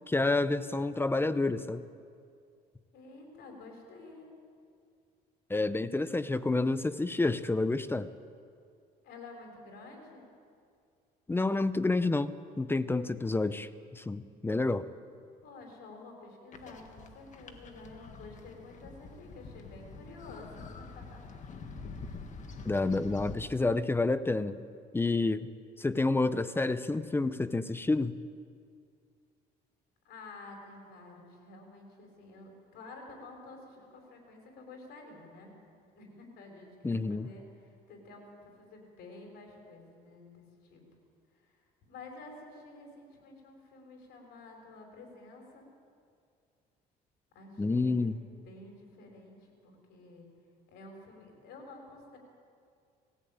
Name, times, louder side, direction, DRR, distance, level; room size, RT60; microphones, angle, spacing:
voice 1, 0.1-1.9 5.5-8.1 11.3-14.9 22.6-24.6 24.9-25.5 25.8-28.2 36.8-37.3 47.6-48.2, left 3 dB, 15° left, 14 dB, 0.6 m, -29 dB
voice 2, 2.9-4.3 9.0-10.3 15.4-21.6 30.0-35.5 35.9-40.8 41.3-45.7 47.3-48.1 48.4-50.3 50.7-52.2, left 2 dB, 75° left, 2 dB, 5.1 m, -50 dB
sound 1, 16.5-23.4, left 4 dB, 45° left, 1.9 m, -46 dB
19.5 x 15.5 x 8.8 m, 2.3 s
cardioid pair, 110°, 17 cm